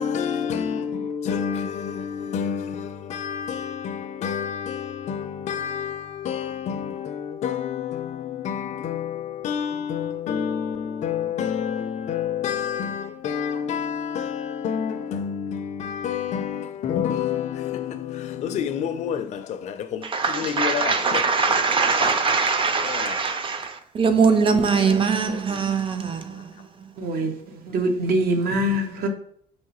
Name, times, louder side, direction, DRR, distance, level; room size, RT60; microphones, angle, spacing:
voice 1, 0.0-21.2 22.0-22.2 22.8-23.2 24.1-24.2 24.5-25.0 25.3-25.4 26.3-26.4, left 8 dB, 45° left, 0.4 m, -29 dB
voice 2, 20.0-27.1, right 5 dB, 30° right, 0.5 m, -22 dB
voice 3, 27.0-29.1, right 1 dB, 65° right, 0.8 m, -24 dB
4.6 x 2.9 x 3.0 m
cardioid pair, 110°, 17 cm